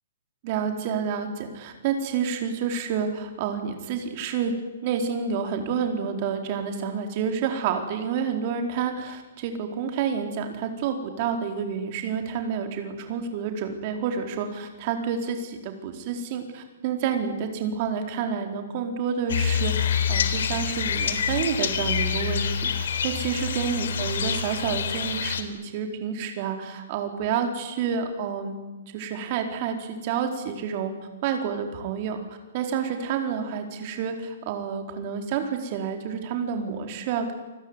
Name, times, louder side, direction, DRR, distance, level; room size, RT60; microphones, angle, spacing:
voice 1, 0.4-4.5 4.8-28.5 28.9-30.9 31.2-32.2 32.5-37.3, right 7 dB, 30° right, 5 dB, 4.4 m, -29 dB
sound 1, 19.3-25.4, left 7 dB, 65° left, 3.8 m, -26 dB
28.5 x 20.5 x 9.9 m, 1.1 s
hypercardioid pair, 170°, 0 cm